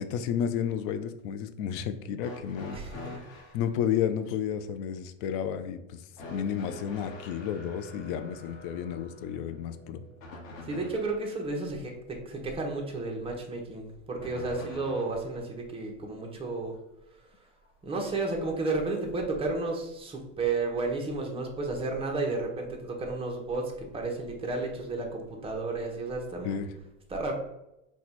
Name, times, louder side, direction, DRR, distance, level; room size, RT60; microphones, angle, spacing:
voice 1, 0.0-2.8 3.5-6.0 6.3-10.0 26.4-26.7, left 8 dB, 45° left, 10 dB, 0.4 m, -31 dB
sound 1, 2.2-3.6 6.2-11.3 14.2-15.3 16.5-16.6 17.7-17.8, left 2 dB, 85° left, 1.1 m, -45 dB
voice 2, 2.7-3.2 10.6-16.8 17.8-26.6 27.1-27.3, right 3 dB, 15° right, 1 dB, 0.8 m, -32 dB
4.3 x 2.4 x 4.1 m, 0.89 s
hypercardioid pair, 115°, 38 cm